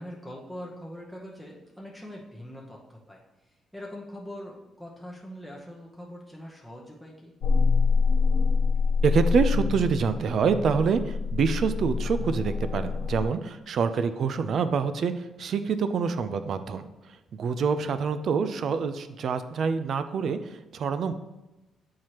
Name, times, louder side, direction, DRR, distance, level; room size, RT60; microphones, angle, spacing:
voice 1, 0.0-3.2 3.7-7.4 13.9-14.0, equal, 5° right, -1 dB, 0.8 m, -42 dB
sound 1, 7.4-13.3, left 4 dB, 75° left, 0.5 m, -25 dB
voice 2, 9.0-21.1, right 5 dB, 60° right, 11 dB, 0.4 m, -26 dB
7.3 x 4.7 x 2.9 m, 1.0 s
cardioid pair, 90°, 0 cm